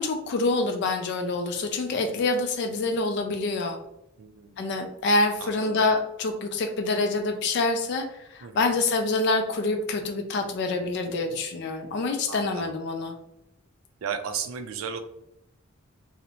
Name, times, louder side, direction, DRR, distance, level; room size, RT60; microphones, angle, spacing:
voice 1, 0.0-3.8 4.6-13.1, left 3 dB, 55° left, 5 dB, 0.3 m, -26 dB
voice 2, 4.2-4.7 5.4-5.8 8.4-8.8 12.3-12.7 14.0-15.0, right 7 dB, 85° right, 7 dB, 0.4 m, -35 dB
2.6 x 2.0 x 2.7 m, 0.82 s
head